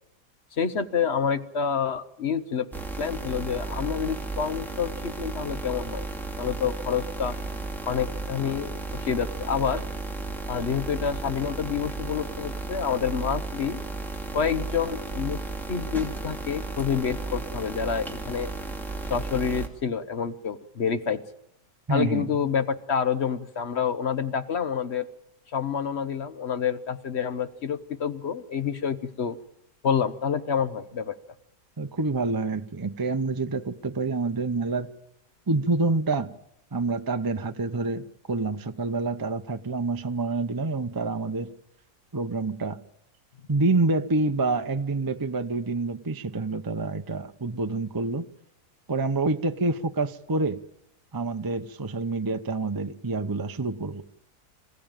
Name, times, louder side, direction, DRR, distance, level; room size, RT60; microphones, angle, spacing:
voice 1, 0.6-2.7 3.0-6.1 6.4-7.4 7.9-9.8 10.5-13.8 14.3-15.4 15.7-18.5 19.1-21.2 21.9-25.1 25.5-29.4 29.8-31.2, left 7 dB, 45° left, 11 dB, 1.1 m, -28 dB
sound 1, 2.7-19.7, right 3 dB, ahead, 2.3 m, -34 dB
voice 2, 21.9-22.3 31.8-34.9 35.5-36.3 36.7-41.5 42.1-42.8 43.5-48.3 48.9-50.6 51.1-54.0, right 3 dB, 35° right, 8 dB, 0.3 m, -27 dB
26.5 x 15.5 x 9.0 m, 0.86 s
omnidirectional pair, 1.8 m